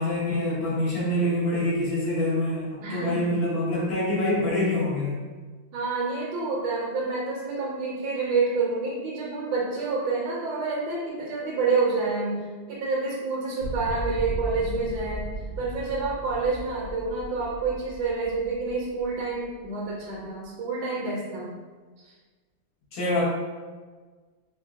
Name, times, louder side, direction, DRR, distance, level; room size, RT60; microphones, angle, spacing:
voice 1, 0.0-5.1 22.9-23.2, left 1 dB, 90° left, -7 dB, 1.9 m, -25 dB
voice 2, 2.8-3.4 5.7-15.2 15.6-21.5, right 4 dB, 80° right, -4 dB, 1.3 m, -28 dB
sound 1, 13.6-19.6, right 1 dB, 60° left, 1.0 m, -36 dB
4.4 x 3.0 x 2.4 m, 1.4 s
omnidirectional pair, 2.1 m